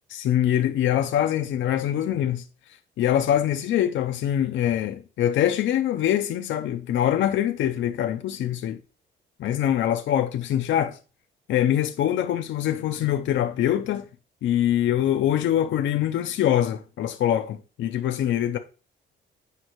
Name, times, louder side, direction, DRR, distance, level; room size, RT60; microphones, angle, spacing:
voice 1, 0.1-2.4 3.0-8.8 9.4-11.0 11.5-14.0 14.4-18.6, left 11 dB, 70° left, 0.5 m, -24 dB
8.2 x 5.2 x 3.0 m
cardioid pair, 90°, 20 cm